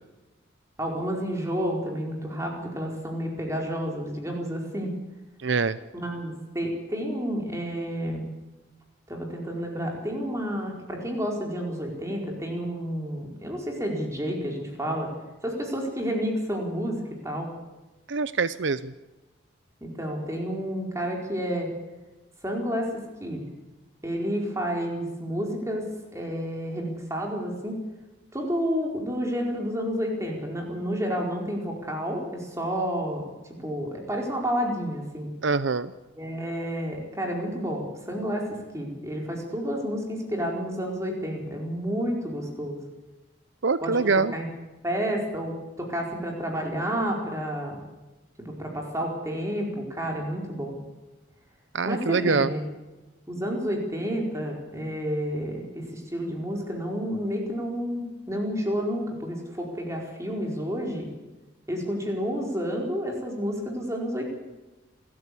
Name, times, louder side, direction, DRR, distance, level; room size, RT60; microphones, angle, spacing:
voice 1, 0.8-4.9 5.9-8.2 9.1-15.1 15.4-17.5 19.8-21.7 22.4-23.5 24.0-25.9 26.1-27.8 28.3-33.2 33.6-35.3 36.2-42.8 43.8-43.9 44.3-44.5 44.8-47.8 48.4-50.8 51.8-52.6 53.3-61.1 61.7-64.3, equal, 15° right, 0 dB, 4.6 m, -30 dB
voice 2, 5.4-5.8 18.1-18.9 35.4-35.9 43.6-44.4 51.7-52.5, right 4 dB, 70° right, 15 dB, 0.7 m, -24 dB
27.0 x 14.0 x 8.5 m, 1.1 s
head